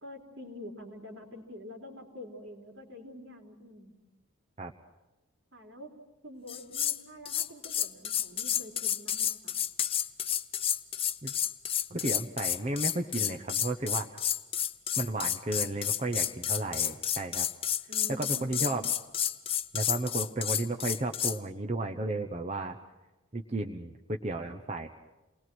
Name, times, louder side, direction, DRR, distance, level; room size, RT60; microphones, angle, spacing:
voice 1, 0.0-3.9 5.5-5.9 6.2-9.6 17.9-18.6, left 1 dB, 65° right, 2 dB, 3.8 m, -47 dB
sound 1, 6.5-7.0 7.3-21.4, left 10 dB, 25° left, 0.7 m, -30 dB
voice 2, 11.9-14.1 15.0-17.5 18.1-18.9 19.7-22.8 23.3-24.9, right 2 dB, 30° right, 4 dB, 0.9 m, -33 dB
29.0 x 20.5 x 6.2 m, 1.1 s
head